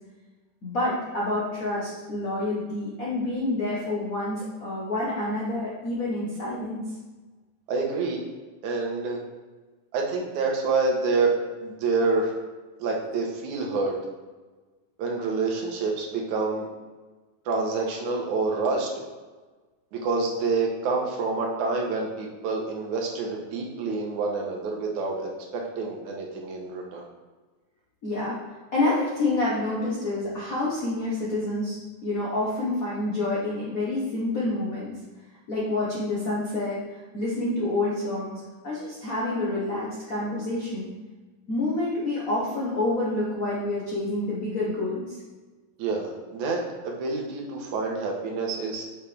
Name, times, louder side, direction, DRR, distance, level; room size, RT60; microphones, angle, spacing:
voice 1, 0.6-6.8 28.0-28.4 28.7-34.9 35.5-40.9 41.5-45.2, left 2 dB, 65° left, -6 dB, 0.8 m, -28 dB
voice 2, 7.7-8.2 8.6-9.2 9.9-12.3 12.8-13.9 15.0-16.7 17.5-19.0 19.9-27.1 45.8-48.8, right 3 dB, 80° right, 0 dB, 2.5 m, -27 dB
6.7 x 5.8 x 3.4 m, 1.3 s
omnidirectional pair, 3.4 m